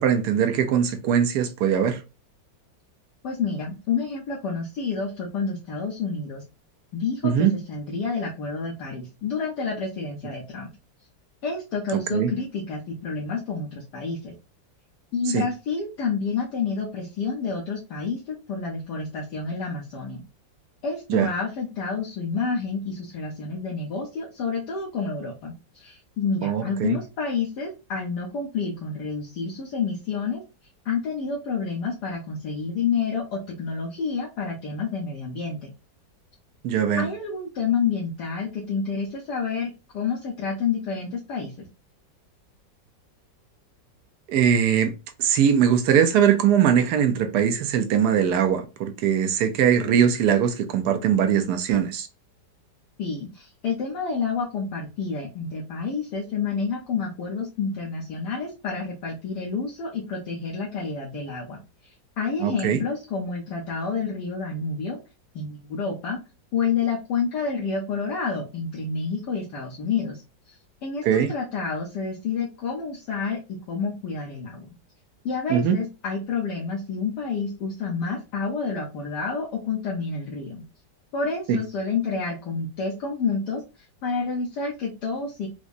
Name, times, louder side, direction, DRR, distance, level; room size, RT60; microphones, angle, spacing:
voice 1, 0.0-2.0 7.2-7.5 12.1-12.3 15.3-15.4 21.1-21.3 26.4-27.0 36.6-37.0 44.3-44.9 45.2-52.1 62.4-62.8 71.0-71.3 75.5-75.8 81.5-81.6, right 8 dB, 70° right, 1.0 m, -21 dB
voice 2, 3.2-6.4 6.9-10.7 11.4-14.3 15.1-20.2 20.8-30.4 30.8-35.7 37.0-41.7 53.0-65.0 65.3-66.2 66.5-70.2 70.5-70.6 70.8-73.4 73.7-74.7 75.2-80.6 81.1-85.5, left 5 dB, 65° left, 1.3 m, -29 dB
4.7 x 2.1 x 2.5 m
omnidirectional pair, 2.0 m